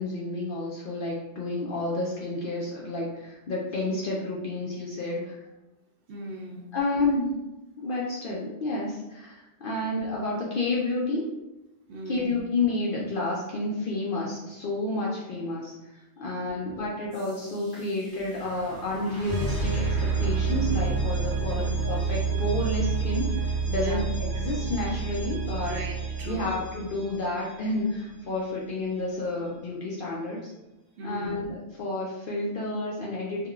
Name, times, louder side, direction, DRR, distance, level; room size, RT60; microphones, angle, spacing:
voice 1, 0.0-5.4 6.7-7.4 7.8-11.2 12.1-15.7 16.2-19.8 20.2-25.8 26.2-30.5 31.0-33.5, left 2 dB, 60° left, -4 dB, 0.6 m, -30 dB
voice 2, 6.1-6.7 11.9-12.4 16.4-16.5 21.4-21.7 23.8-24.0 25.6-26.5 31.0-31.4, right 2 dB, 65° right, -1 dB, 0.8 m, -38 dB
sound 1, 17.1-27.9, right 4 dB, 20° right, 0.6 m, -29 dB
3.6 x 2.2 x 2.3 m, 0.96 s
omnidirectional pair, 1.3 m